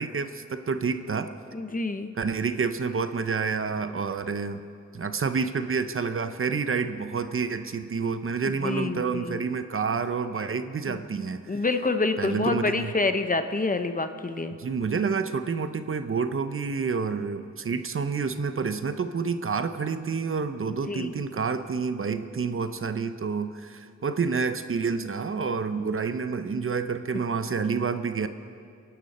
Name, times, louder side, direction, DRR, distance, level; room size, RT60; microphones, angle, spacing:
voice 1, 0.0-1.3 2.2-4.6 4.9-11.6 12.2-12.9 14.6-28.3, right 5 dB, 45° right, 9 dB, 0.7 m, -28 dB
voice 2, 1.5-2.1 8.6-9.4 10.9-11.0 11.5-14.6 20.9-21.1, left 3 dB, 30° left, 8 dB, 0.8 m, -27 dB
26.5 x 12.0 x 4.2 m, 2.3 s
wide cardioid pair, 105°, 30 cm